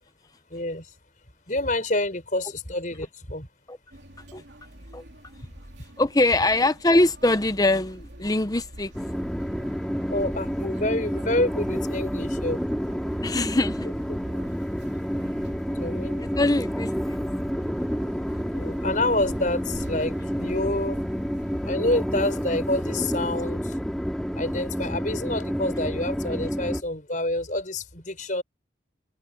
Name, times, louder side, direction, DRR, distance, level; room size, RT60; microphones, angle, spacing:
voice 1, 0.5-0.9 1.5-3.5 10.1-12.6 15.7-16.3 18.5-21.0 21.7-23.8 24.3-28.4, left 1 dB, 40° left, 5.7 m, -28 dB
sound 1, 3.9-21.8, right 1 dB, 65° right, 3.1 m, -45 dB
voice 2, 6.0-8.9 13.2-13.9 16.2-17.2, left 2 dB, 20° left, 0.8 m, -23 dB
Train, 8.9-26.8, equal, 5° left, 3.3 m, -29 dB
head